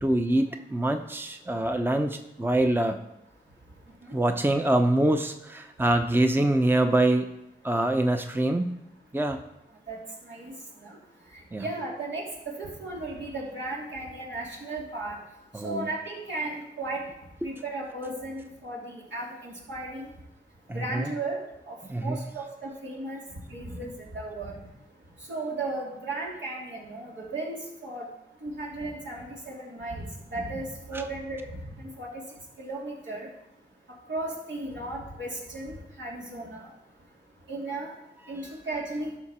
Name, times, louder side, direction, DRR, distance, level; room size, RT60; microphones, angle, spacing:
voice 1, 0.0-3.0 4.1-7.3 7.6-8.7 9.1-9.4 11.5-11.6 15.5-15.9 17.4-17.5 20.7-21.1 21.9-22.2 30.9-31.0, right 1 dB, 10° right, 6 dB, 0.8 m, -25 dB
voice 2, 11.6-15.2 15.6-17.1 17.4-20.1 20.7-23.2 23.5-24.6 25.3-28.1 28.4-31.5 31.8-32.2 32.6-33.3 34.1-36.7 37.5-37.9 38.3-39.1, right 2 dB, 75° right, -4 dB, 3.0 m, -35 dB
11.5 x 5.9 x 4.3 m, 0.86 s
cardioid pair, 40°, 19 cm